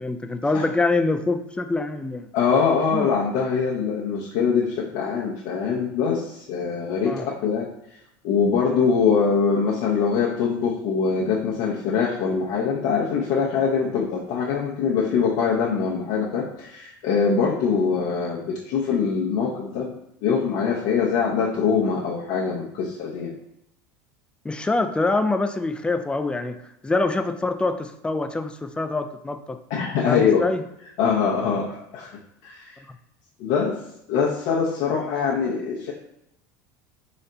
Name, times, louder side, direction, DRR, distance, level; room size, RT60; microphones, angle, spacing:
voice 1, 0.0-2.3 2.9-3.1 7.1-7.3 24.4-26.6 26.8-29.6 30.1-30.6, left 3 dB, 10° left, 8 dB, 0.3 m, -25 dB
voice 2, 2.3-7.7 8.2-19.9 20.2-23.3 29.7-30.4 31.0-32.8 33.4-33.8 34.1-35.9, left 6 dB, 65° left, -5 dB, 0.7 m, -23 dB
4.1 x 2.2 x 3.8 m, 0.78 s
supercardioid pair, 100°, 10 cm